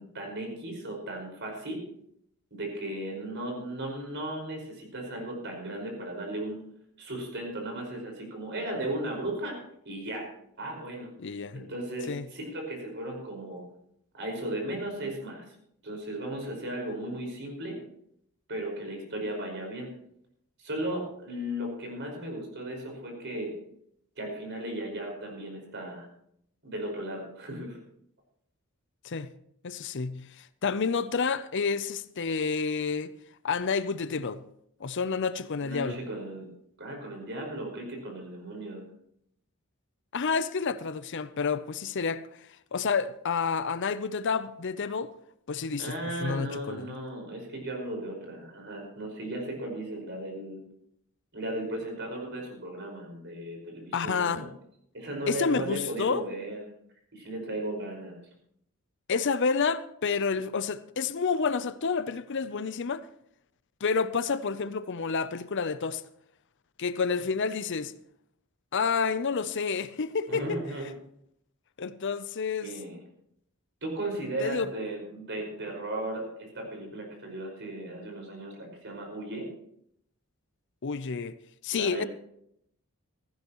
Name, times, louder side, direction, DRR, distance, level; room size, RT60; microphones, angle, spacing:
voice 1, 0.0-1.9 2.5-6.6 7.0-9.6 9.8-10.3 10.6-11.1 11.5-13.6 14.1-15.4 15.8-17.8 18.5-19.9 20.6-23.5 24.2-26.1 26.6-27.8 35.6-36.5 36.8-38.8 45.8-50.6 51.3-54.5 54.9-56.6 57.1-58.2 70.3-70.9 72.6-73.0 73.8-79.5 81.7-82.1, right 1 dB, 55° right, 5.2 m, -36 dB
voice 2, 11.2-11.6 12.1-12.3 29.0-29.3 29.6-33.1 33.4-34.4 34.8-36.0 40.1-45.1 45.5-46.9 53.9-54.4 55.3-56.2 59.1-63.0 63.8-66.0 66.8-67.9 68.7-70.6 71.8-72.7 74.4-74.7 80.8-81.4 81.6-82.1, left 5 dB, 55° left, 0.6 m, -29 dB
16.5 x 15.0 x 3.1 m
head